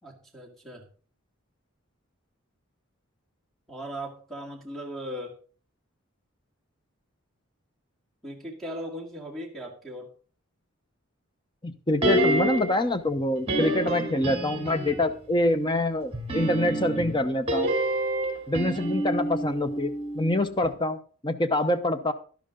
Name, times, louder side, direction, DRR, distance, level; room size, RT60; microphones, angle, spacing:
voice 1, 0.0-0.8 3.7-5.4 8.2-10.1, equal, ahead, 1 dB, 2.1 m, -38 dB
voice 2, 11.6-17.7 18.5-22.1, left 1 dB, 20° left, 10 dB, 0.8 m, -26 dB
sound 1, 12.0-12.8 13.5-15.1 16.1-20.3 20.6-20.7, right 1 dB, 25° right, 3.0 m, -28 dB
12.0 x 11.5 x 3.8 m, 0.41 s
head